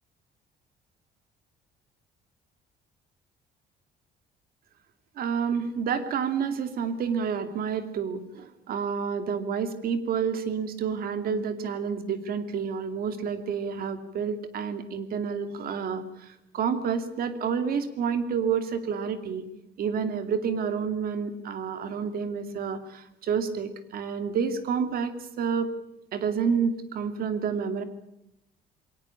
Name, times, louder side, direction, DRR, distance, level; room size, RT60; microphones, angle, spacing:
voice 1, 5.2-19.4 19.8-25.7 26.1-27.8, right 6 dB, 60° right, 9 dB, 2.5 m, -29 dB
22.0 x 18.5 x 8.8 m, 0.86 s
cardioid pair, 110°, 17 cm